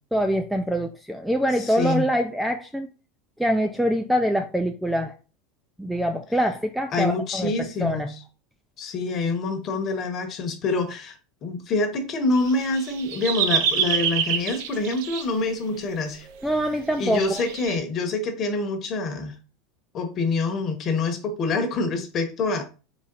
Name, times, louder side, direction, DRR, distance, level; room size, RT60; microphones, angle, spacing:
voice 1, 0.1-2.9 3.4-5.1 5.8-7.5 7.8-8.1 16.4-17.4, equal, ahead, 5 dB, 0.3 m, -24 dB
voice 2, 1.6-2.1 6.9-8.1 8.8-16.3 17.0-19.3 19.9-22.6, left 3 dB, 30° left, 5 dB, 0.9 m, -26 dB
sound 1, 12.4-15.2 16.4-16.5 17.2-17.8, right 8 dB, 70° right, 0.8 m, -26 dB
4.1 x 3.1 x 3.8 m, 0.34 s
supercardioid pair, 155°, 0 cm